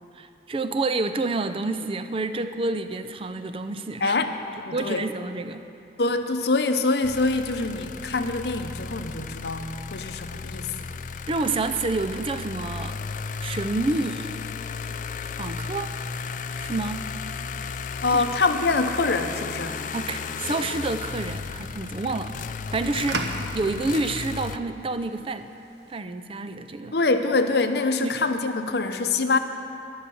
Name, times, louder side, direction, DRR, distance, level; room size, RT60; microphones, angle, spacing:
voice 1, 0.2-4.2 4.7-5.6 11.3-12.9 13.4-14.4 15.4-15.9 16.6-17.1 18.1-18.2 19.9-22.4 22.7-25.5 25.9-26.9 28.0-28.2, right 3 dB, 30° right, 9 dB, 0.4 m, -28 dB
voice 2, 4.0-4.3 4.7-5.0 6.0-10.7 18.0-19.8 26.9-29.4, left 3 dB, 60° left, 8 dB, 0.8 m, -24 dB
sound 1, 7.0-24.6, left 5 dB, 45° left, 0.4 m, -34 dB
sound 2, 19.5-26.0, right 2 dB, 70° right, 1.0 m, -39 dB
13.0 x 10.5 x 7.0 m, 2.7 s
head